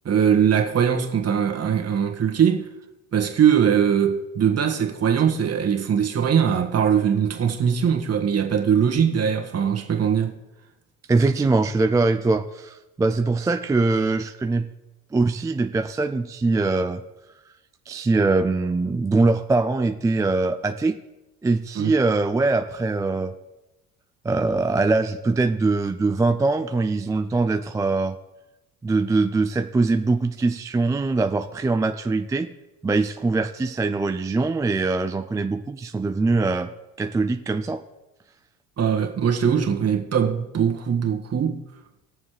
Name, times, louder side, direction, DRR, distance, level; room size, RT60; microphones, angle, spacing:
voice 1, 0.0-2.7 3.1-10.3 21.7-21.9 38.8-41.6, right 8 dB, 35° right, 1.6 m, -21 dB
voice 2, 11.1-14.7 15.1-17.0 17.9-21.0 21.4-23.3 24.2-28.2 28.8-32.5 32.8-36.7 37.0-37.8, right 3 dB, 10° right, 0.3 m, -22 dB
20.0 x 7.1 x 3.3 m
hypercardioid pair, 65°, 42 cm